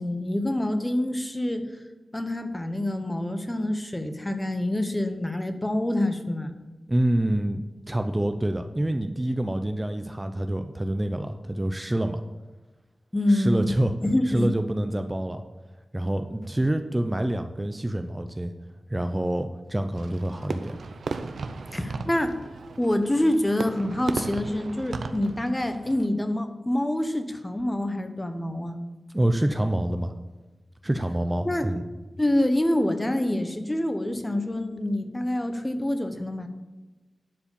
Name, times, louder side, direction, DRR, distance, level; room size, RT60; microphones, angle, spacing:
voice 1, 0.0-1.7 2.1-6.5 13.1-13.7 14.0-14.5 21.7-22.3 22.8-28.8 31.4-31.7 32.2-36.5, left 1 dB, 20° left, 8 dB, 1.0 m, -26 dB
voice 2, 6.9-7.6 7.9-12.2 13.3-13.9 14.3-15.4 15.9-18.5 18.9-20.8 29.1-30.1 30.8-31.8, right 1 dB, 20° right, 7 dB, 0.6 m, -26 dB
Fireworks, 19.9-26.1, right 4 dB, 85° right, 0.6 m, -36 dB
11.0 x 4.9 x 7.0 m, 1.2 s
cardioid pair, 65°, 0 cm